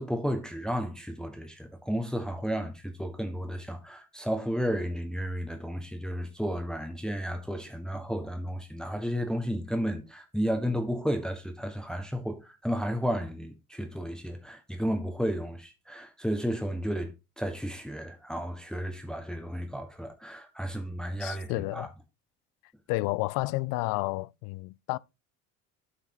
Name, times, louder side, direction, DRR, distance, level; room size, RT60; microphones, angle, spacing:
voice 1, 0.0-21.9, equal, ahead, 1.4 m, -33 dB
voice 2, 21.2-21.9 22.9-25.0, left 22 dB, 50° left, 0.4 m, -31 dB
12.5 x 5.7 x 2.9 m
figure-of-eight pair, 60°, 44 cm